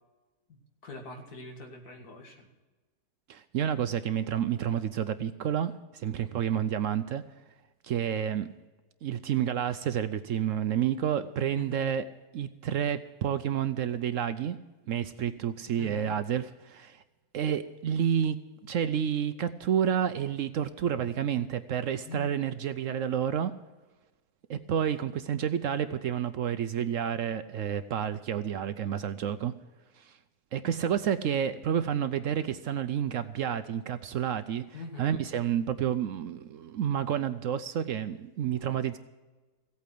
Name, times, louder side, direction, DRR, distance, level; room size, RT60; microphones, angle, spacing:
voice 1, 0.8-2.5 11.6-11.9 15.1-15.2 15.8-16.2 22.1-22.4 34.7-35.1, left 2 dB, 70° left, 2 dB, 2.4 m, -43 dB
voice 2, 3.3-7.2 7.8-8.5 9.0-12.0 12.3-14.6 14.9-17.0 17.3-18.4 18.7-23.5 24.5-29.5 30.0-30.1 30.5-39.0, right 9 dB, 65° right, 11 dB, 0.8 m, -30 dB
16.0 x 8.6 x 7.6 m, 1.2 s
omnidirectional pair, 1.7 m